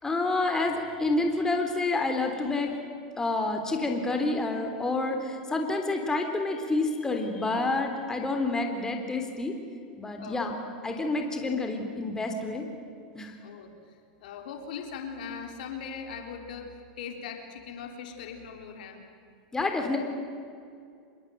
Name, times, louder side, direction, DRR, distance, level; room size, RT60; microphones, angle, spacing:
voice 1, 0.0-2.8 3.2-9.5 10.0-12.7 13.2-13.3 19.5-20.0, left 2 dB, 10° left, 4 dB, 3.6 m, -28 dB
voice 2, 13.4-13.8 14.2-19.0, left 6 dB, 75° left, 4 dB, 3.8 m, -40 dB
26.5 x 21.5 x 9.3 m, 2.3 s
hypercardioid pair, 120°, 5 cm